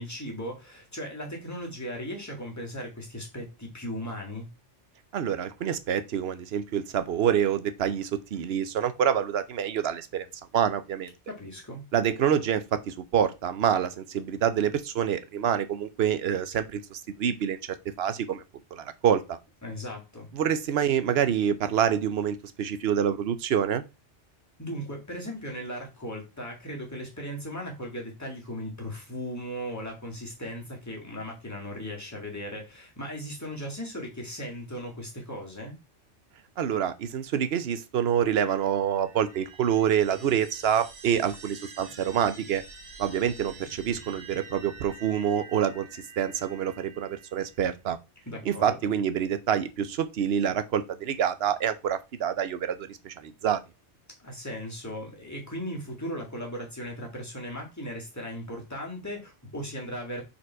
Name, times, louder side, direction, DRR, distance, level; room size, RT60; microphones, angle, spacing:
voice 1, 0.0-4.5 11.3-11.8 19.6-20.3 24.6-35.7 48.3-48.9 54.2-60.2, equal, 15° left, 2.1 m, -37 dB
voice 2, 5.1-10.3 10.5-11.1 11.9-17.6 18.0-18.4 18.7-19.4 20.3-23.8 36.6-42.6 43.0-48.0 48.4-53.6, right 9 dB, 65° right, 0.9 m, -27 dB
sound 1, 38.4-47.7, right 3 dB, 85° right, 1.7 m, -48 dB
5.1 x 4.3 x 4.6 m
omnidirectional pair, 1.2 m